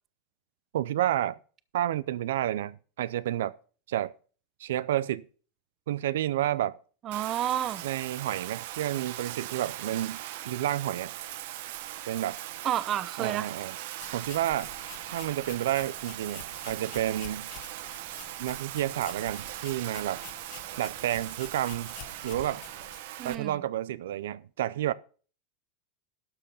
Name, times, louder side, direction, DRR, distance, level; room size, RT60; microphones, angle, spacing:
voice 1, 0.7-1.4 1.7-3.6 3.9-4.1 4.6-5.3 5.9-6.8 7.8-10.2 10.4-11.1 12.1-12.4 13.2-13.8 14.1-14.7 15.1-17.5 18.4-20.2 20.8-21.9 22.2-22.6 23.2-24.9, right 12 dB, 85° right, 0.5 m, -30 dB
voice 2, 7.0-7.8 12.6-13.5 23.2-23.6, right 11 dB, 30° right, 0.7 m, -30 dB
Bathtub (filling or washing), 7.1-23.3, right 14 dB, 65° right, 1.0 m, -40 dB
sound 1, 14.0-23.0, left 11 dB, 45° left, 1.7 m, -49 dB
12.5 x 6.5 x 5.6 m
supercardioid pair, 145°, 0 cm